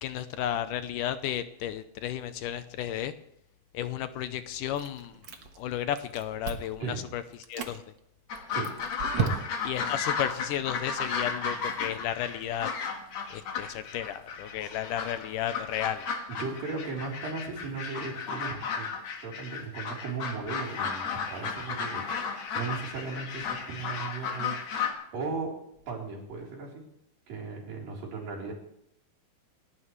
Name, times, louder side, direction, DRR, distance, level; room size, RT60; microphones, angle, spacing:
voice 1, 0.0-3.1 3.7-5.2 5.6-6.8 7.1-7.2 7.5-7.8 9.7-12.7 13.3-16.1, left 11 dB, 80° left, 11 dB, 2.2 m, -33 dB
Chewing mastication, 4.8-5.7 6.0-6.8 7.3-7.8 8.3-9.8, right 5 dB, 50° right, 1.4 m, -34 dB
sound 1, 8.3-24.9, left 5 dB, 55° left, 2.5 m, -34 dB
voice 2, 16.3-18.9 19.2-22.1 22.5-24.9 25.1-25.6 25.9-26.9 27.3-28.5, right 4 dB, 75° right, -3 dB, 5.5 m, -36 dB
28.0 x 12.5 x 3.2 m, 0.74 s
omnidirectional pair, 4.0 m